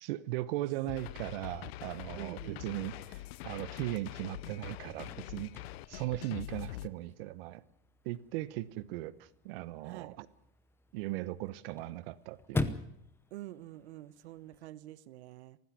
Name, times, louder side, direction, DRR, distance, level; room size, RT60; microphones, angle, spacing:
voice 1, 0.0-5.5 5.9-7.6 8.0-10.3 10.9-12.8, right 16 dB, 60° right, 1.0 m, -38 dB
sound 1, 0.9-6.9, left 15 dB, 65° left, 0.8 m, -44 dB
voice 2, 2.2-2.7 9.8-10.2 13.3-15.6, right 15 dB, 85° right, 1.2 m, -47 dB
Chirp tweet / Car / Slam, 4.7-14.7, left 3 dB, 5° left, 0.8 m, -43 dB
18.5 x 15.0 x 9.7 m
supercardioid pair, 165°, 32 cm